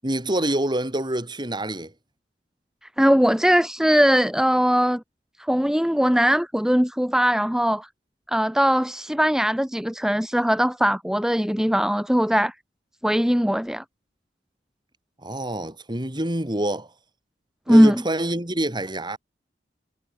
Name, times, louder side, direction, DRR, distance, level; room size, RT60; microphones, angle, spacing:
voice 1, 0.0-1.9 15.2-16.9 17.7-19.2, right 1 dB, 25° right, 5.0 m, -26 dB
voice 2, 3.0-5.0 5.5-7.9 8.3-12.5 13.0-13.8 17.7-18.0, equal, 5° right, 1.0 m, -20 dB
head